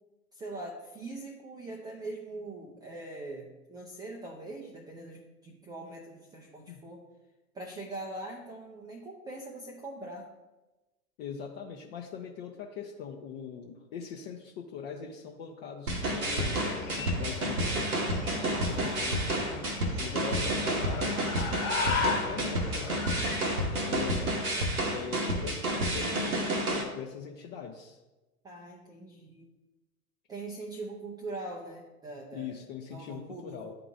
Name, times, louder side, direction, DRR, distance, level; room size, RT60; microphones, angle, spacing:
voice 1, 0.3-7.0 7.5-10.3 18.5-19.8 24.1-24.2 28.4-29.5 30.3-32.6 32.9-33.7, right 2 dB, 10° right, 0 dB, 0.4 m, -42 dB
voice 2, 11.2-18.1 18.7-19.2 20.0-21.3 21.8-23.5 23.8-24.5 24.9-28.0 32.3-33.8, left 7 dB, 45° left, 1 dB, 0.7 m, -41 dB
sound 1, 15.9-24.5, left 4 dB, 75° left, 1.3 m, -37 dB
sound 2, 15.9-26.8, right 1 dB, 85° right, 1.1 m, -30 dB
10.5 x 3.9 x 2.5 m, 1.1 s
figure-of-eight pair, 85°, 43 cm